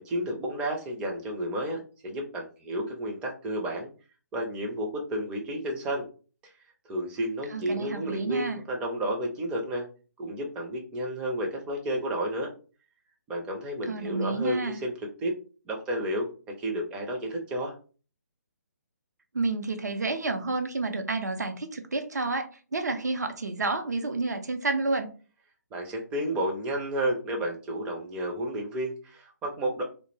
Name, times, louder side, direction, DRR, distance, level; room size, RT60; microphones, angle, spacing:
voice 1, 0.0-3.9 4.3-6.0 6.4-6.5 6.9-9.9 10.2-12.5 13.3-14.9 15.2-15.3 15.6-17.7 25.7-29.8, right 1 dB, 10° right, 0 dB, 0.4 m, -31 dB
voice 2, 7.5-8.6 13.9-14.8 19.3-25.1, right 3 dB, 70° right, 6 dB, 0.6 m, -30 dB
2.3 x 2.0 x 3.2 m, 0.37 s
figure-of-eight pair, 140°, 9 cm